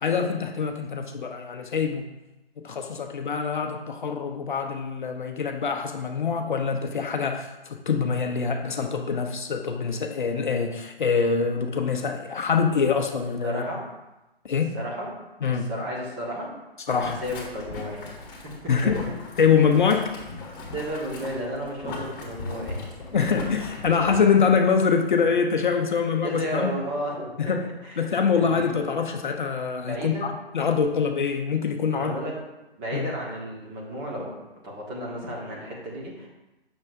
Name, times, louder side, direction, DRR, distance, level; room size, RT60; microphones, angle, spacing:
voice 1, 0.0-2.1 2.6-13.6 14.5-14.7 15.4-15.7 16.9-17.2 18.7-19.0 19.4-20.1 23.1-26.7 27.4-27.6 28.0-32.2 32.9-33.1, left 6 dB, 50° left, 4 dB, 0.7 m, -24 dB
voice 2, 13.4-13.9 14.7-15.2 15.5-16.5 17.0-18.2 18.4-18.7 20.7-23.2 26.2-27.5 27.8-28.0 28.3-28.8 29.8-30.3 31.9-32.4 32.8-34.4 34.6-36.3, equal, 20° right, -3 dB, 1.5 m, -33 dB
Boiling, 16.9-24.2, left 2 dB, 20° left, 1.9 m, -38 dB
7.3 x 6.1 x 2.6 m, 1.0 s
figure-of-eight pair, 145°, 31 cm